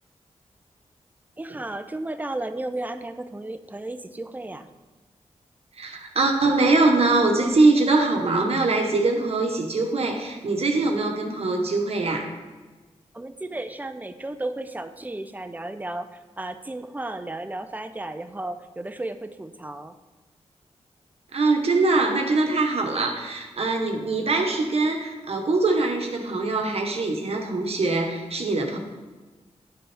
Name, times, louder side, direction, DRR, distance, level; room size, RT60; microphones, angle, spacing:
voice 1, 1.4-4.7 13.1-19.9, right 2 dB, 15° right, 9 dB, 0.5 m, -34 dB
voice 2, 5.8-12.3 21.3-28.8, right 3 dB, 60° right, 3 dB, 1.1 m, -22 dB
10.5 x 4.3 x 3.4 m, 1.3 s
cardioid pair, 70°, 12 cm